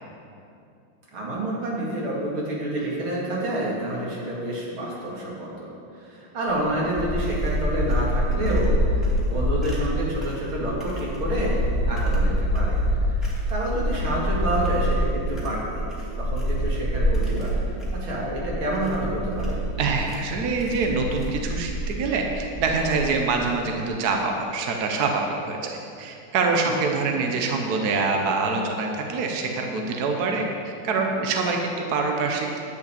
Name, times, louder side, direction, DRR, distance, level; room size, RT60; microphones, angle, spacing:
voice 1, 1.1-5.7 6.0-11.6 11.9-12.8 13.5-15.9 16.2-17.6 17.9-19.6 26.5-26.8, right 1 dB, 75° right, -4 dB, 3.1 m, -28 dB
sound 1, 6.5-23.3, equal, ahead, 2.2 m, -26 dB
voice 2, 19.8-32.6, right 4 dB, 55° right, 2 dB, 1.3 m, -25 dB
10.5 x 5.7 x 8.5 m, 2.6 s
omnidirectional pair, 2.3 m